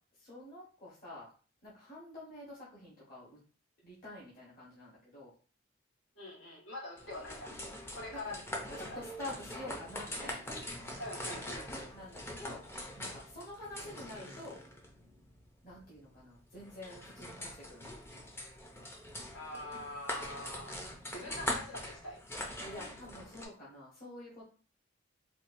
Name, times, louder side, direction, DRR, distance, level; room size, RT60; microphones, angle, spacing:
voice 1, 0.2-1.3 1.6-3.4 3.8-5.3 8.2-8.4 8.8-10.9 11.9-12.6 13.0-14.6 15.6-17.9 22.6-24.4, left 2 dB, 45° left, -7 dB, 1.1 m, -48 dB
voice 2, 6.1-7.5 7.9-9.0 11.0-11.9 19.3-20.8 21.1-22.2, left 1 dB, 85° left, -4 dB, 1.3 m, -44 dB
sound 1, 7.0-23.5, left 1 dB, 10° left, 0.5 m, -43 dB
4.3 x 2.3 x 2.5 m, 0.38 s
head